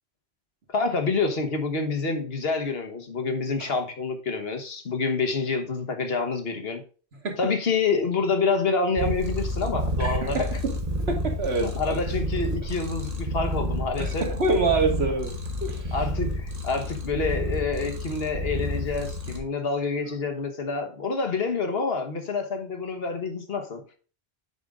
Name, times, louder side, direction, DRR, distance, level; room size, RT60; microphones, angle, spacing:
voice 1, 0.7-6.8 7.4-10.5 11.6-14.3 15.9-23.8, left 4 dB, 70° left, 1.4 m, -27 dB
Purr, 9.0-19.4, equal, 40° right, 1.3 m, -30 dB
voice 2, 10.0-12.0 14.0-15.3 15.6-15.9, right 3 dB, 85° right, 1.9 m, -27 dB
8.0 x 5.1 x 3.6 m
omnidirectional pair, 1.1 m